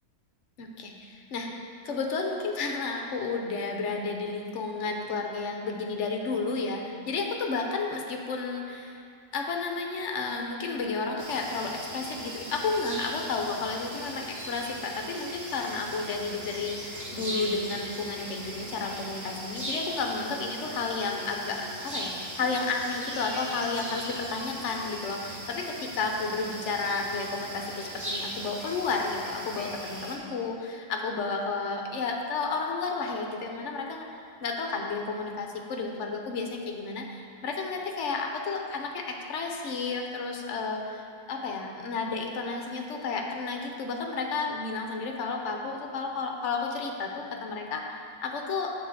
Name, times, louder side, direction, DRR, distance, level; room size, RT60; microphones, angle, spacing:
voice 1, 0.6-1.5 1.8-9.0 9.3-22.1 22.4-34.1 34.4-48.7, left 4 dB, 55° left, 2 dB, 0.9 m, -32 dB
sound 1, 11.2-30.2, right 1 dB, 20° right, 0.4 m, -39 dB
7.1 x 3.9 x 6.5 m, 2.4 s
omnidirectional pair, 1.7 m